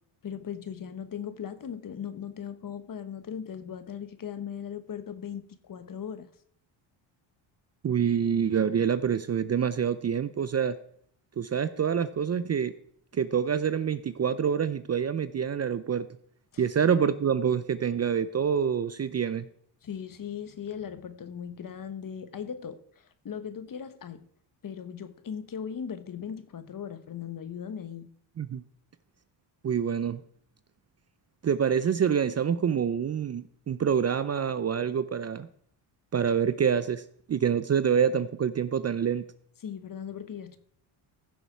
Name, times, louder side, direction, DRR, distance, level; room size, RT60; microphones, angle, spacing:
voice 1, 0.2-6.3 16.5-16.7 19.8-24.2 24.6-28.1 39.6-40.6, left 8 dB, 40° left, 1.2 m, -38 dB
voice 2, 7.8-10.8 11.4-12.7 13.1-16.1 16.6-19.5 28.4-28.6 29.6-30.2 31.4-35.5 36.1-37.0 37.3-39.2, right 7 dB, 35° right, 0.5 m, -26 dB
15.0 x 6.9 x 4.6 m
cardioid pair, 90°, 48 cm